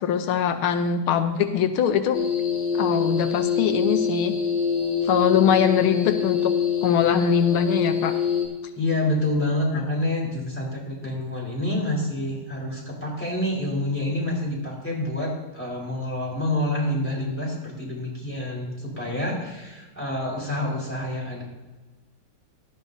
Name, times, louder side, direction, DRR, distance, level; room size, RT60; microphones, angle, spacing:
voice 1, 0.0-2.2 2.7-4.4 5.0-6.5 6.8-8.1, left 8 dB, 90° left, 8 dB, 1.7 m, -22 dB
sound 1, 2.1-8.4, left 6 dB, 70° left, 4.0 m, -25 dB
voice 2, 8.8-21.4, left 1 dB, 5° left, -4 dB, 3.9 m, -27 dB
18.0 x 12.0 x 2.7 m, 1.2 s
omnidirectional pair, 2.3 m